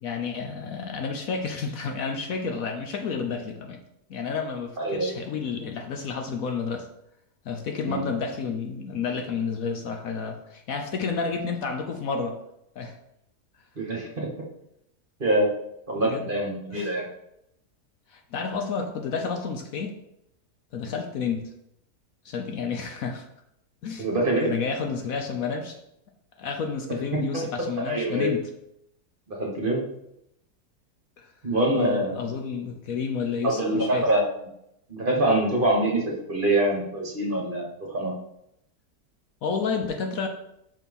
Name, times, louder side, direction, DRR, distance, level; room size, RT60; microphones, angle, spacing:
voice 1, 0.0-3.8 4.1-6.9 7.4-12.4 12.8-12.9 15.9-16.3 16.7-16.9 18.1-20.0 20.7-21.5 22.2-23.2 23.8-24.1 24.4-25.8 26.4-28.4 31.2-31.3 31.7-34.1 39.4-40.3, left 5 dB, 65° left, 5 dB, 1.1 m, -30 dB
voice 2, 4.8-5.1 7.8-8.0 13.8-14.3 15.2-15.5 15.9-17.0 24.0-24.5 27.1-27.4 27.9-28.3 29.3-29.8 31.4-32.2 33.4-34.2 34.9-38.1, right 1 dB, 35° right, -2 dB, 1.6 m, -25 dB
5.9 x 4.4 x 5.3 m, 0.79 s
omnidirectional pair, 1.7 m